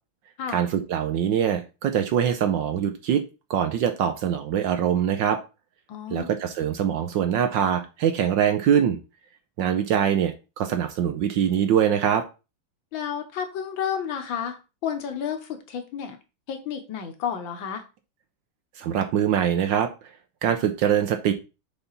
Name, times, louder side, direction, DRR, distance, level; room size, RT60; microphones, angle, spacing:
voice 1, 0.5-3.2 3.5-5.4 6.1-9.0 9.6-12.2 18.8-19.9 20.4-21.3, right 9 dB, 70° right, 7 dB, 1.2 m, -23 dB
voice 2, 5.9-6.3 12.9-16.2 16.5-17.8, left 8 dB, 65° left, 7 dB, 1.6 m, -31 dB
6.9 x 4.0 x 4.0 m, 0.29 s
omnidirectional pair, 2.4 m